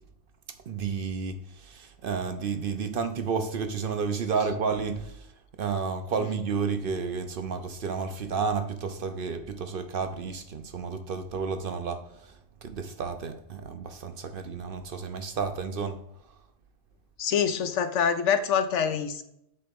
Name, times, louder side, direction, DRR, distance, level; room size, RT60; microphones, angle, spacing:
voice 1, 0.7-5.2 5.6-12.3 12.6-16.0, right 5 dB, 55° right, 0.8 m, -31 dB
voice 2, 17.2-19.2, left 7 dB, 85° left, 1.1 m, -25 dB
7.9 x 3.3 x 5.2 m
omnidirectional pair, 1.2 m